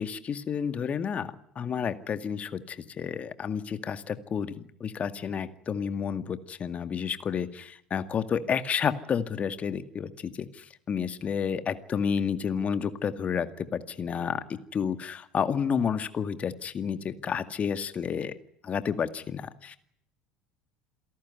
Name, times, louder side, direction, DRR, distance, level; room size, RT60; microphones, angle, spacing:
voice 1, 0.0-10.1 10.4-10.5 10.9-18.3 18.6-19.8, left 7 dB, 30° left, 11 dB, 2.1 m, -30 dB
28.0 x 18.0 x 9.7 m, 0.69 s
figure-of-eight pair, 65°, 4 cm